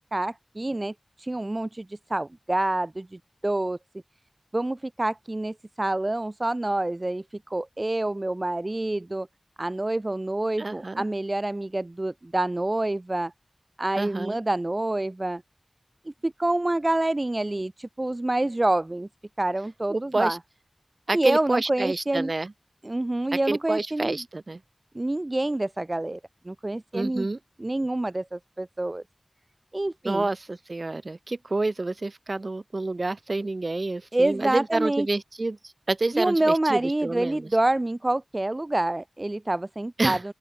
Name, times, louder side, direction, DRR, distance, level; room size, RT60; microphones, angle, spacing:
voice 1, 0.1-3.8 4.5-9.3 9.6-13.3 13.8-15.4 16.0-19.1 19.4-20.4 21.1-22.3 22.8-24.2 24.9-26.2 26.4-27.3 27.6-29.0 29.7-30.3 34.1-35.1 36.1-40.3, right 2 dB, 35° right, 1.5 m, -27 dB
voice 2, 10.6-11.0 14.0-14.4 19.9-20.4 21.1-22.5 23.3-24.6 26.9-27.4 30.0-37.5 40.0-40.2, right 2 dB, 55° right, 4.6 m, -28 dB
open air
wide cardioid pair, 55°, 0 cm